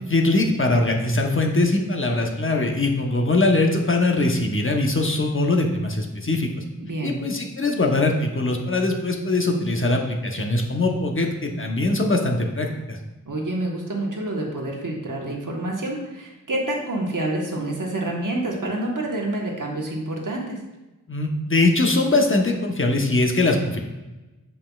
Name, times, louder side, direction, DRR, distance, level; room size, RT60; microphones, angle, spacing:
voice 1, 0.0-6.5 7.0-13.0 21.1-23.8, left 2 dB, 40° left, 2 dB, 0.9 m, -22 dB
voice 2, 6.8-7.2 13.3-20.6, right 1 dB, 65° right, -1 dB, 1.2 m, -28 dB
7.5 x 5.4 x 2.3 m, 1.1 s
wide cardioid pair, 60°, 34 cm